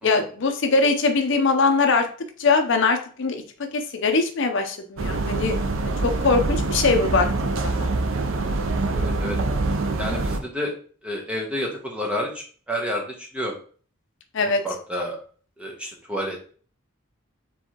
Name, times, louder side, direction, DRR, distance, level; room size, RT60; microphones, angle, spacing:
voice 1, 0.0-2.1 2.4-3.4 3.7-5.6 6.0-7.9 14.3-14.6, left 4 dB, 60° left, 5 dB, 0.6 m, -22 dB
sound 1, 5.0-10.4, right 2 dB, 65° right, 0.5 m, -25 dB
voice 2, 8.9-9.4 10.0-10.7 11.0-13.6 14.6-15.2 15.6-16.5, equal, 5° right, -1 dB, 0.8 m, -30 dB
4.6 x 3.5 x 2.9 m, 0.42 s
head